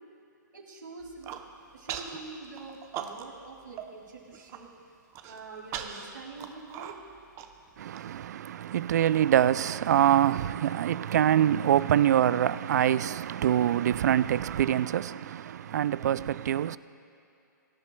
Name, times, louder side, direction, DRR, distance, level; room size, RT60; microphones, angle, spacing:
voice 1, 0.5-1.4 1.7-4.7 5.2-7.0, right 3 dB, 80° right, 2.6 m, -45 dB
Human voice, 1.0-1.4 1.9-2.2 2.6-3.5 3.8-3.9 4.3-4.6 5.1-8.0, right 9 dB, 30° right, 0.8 m, -39 dB
voice 2, 7.8-16.8, right 11 dB, 60° right, 0.3 m, -25 dB
22.5 x 11.0 x 2.3 m
hypercardioid pair, 125°, 10 cm